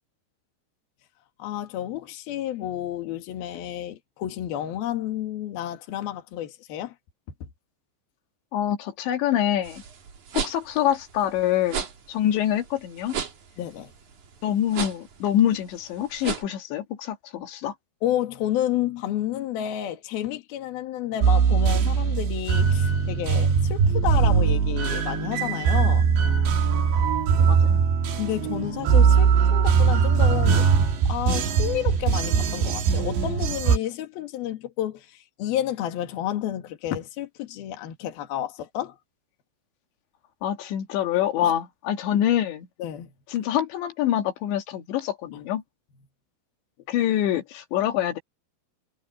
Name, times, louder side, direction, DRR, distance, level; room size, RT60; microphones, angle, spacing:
voice 1, 1.4-7.0 7.4-7.5 13.6-13.9 18.0-26.1 28.1-30.7 31.1-39.0 41.4-41.5 42.8-43.1 45.3-45.4, left 12 dB, 65° left, 3.7 m, -30 dB
voice 2, 8.5-9.8 10.3-13.2 14.4-17.7 27.4-27.8 40.4-42.7 43.3-45.6 46.9-48.2, left 11 dB, 85° left, 4.1 m, -25 dB
sound 1, 9.6-16.5, right 7 dB, 50° right, 3.9 m, -35 dB
sound 2, 21.2-33.8, right 6 dB, 75° right, 4.9 m, -21 dB
omnidirectional pair, 5.0 m